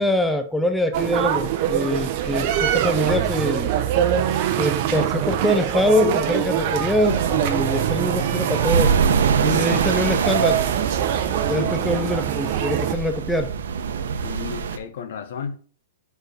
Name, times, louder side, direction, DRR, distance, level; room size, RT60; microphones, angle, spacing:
voice 1, 0.0-3.7 4.6-9.0 9.4-10.7 11.5-13.5, left 1 dB, 5° left, 0.5 m, -24 dB
sound 1, 0.9-12.9, right 10 dB, 45° right, 0.7 m, -24 dB
sound 2, 7.1-14.8, right 6 dB, 90° right, 0.7 m, -24 dB
voice 2, 11.5-12.5 14.2-15.6, left 7 dB, 65° left, 0.9 m, -34 dB
4.7 x 4.6 x 4.9 m
supercardioid pair, 160°, 0 cm